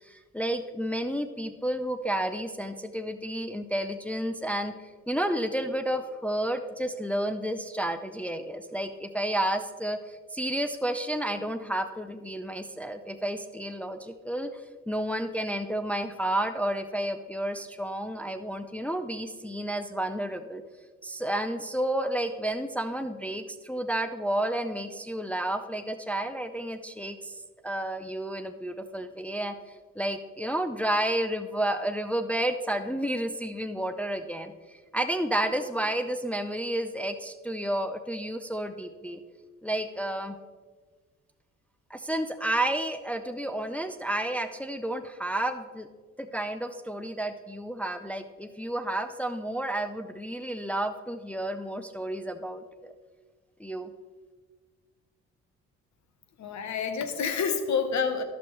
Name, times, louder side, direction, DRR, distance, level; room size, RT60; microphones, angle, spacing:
voice 1, 0.0-4.7 5.1-14.5 14.9-20.6 21.0-39.2 39.6-40.4 41.9-45.9 46.2-52.9 53.6-53.9, right 1 dB, 5° left, 7 dB, 0.5 m, -31 dB
voice 2, 56.4-58.2, left 6 dB, 65° left, 8 dB, 1.1 m, -28 dB
13.5 x 6.0 x 3.2 m, 1.4 s
cardioid pair, 90°, 30 cm